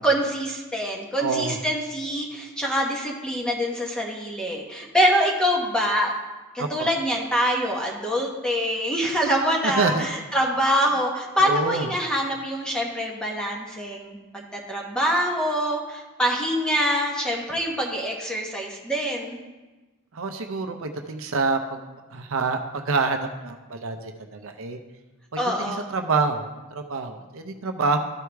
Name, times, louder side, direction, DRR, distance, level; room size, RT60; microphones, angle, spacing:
voice 1, 0.0-6.1 6.5-19.4 25.4-25.9, equal, 5° left, -1 dB, 1.1 m, -25 dB
voice 2, 1.2-1.6 6.6-6.9 9.8-10.1 11.4-11.9 20.1-24.8 25.6-28.0, right 4 dB, 65° right, 6 dB, 0.6 m, -27 dB
13.5 x 4.8 x 3.4 m, 1.2 s
head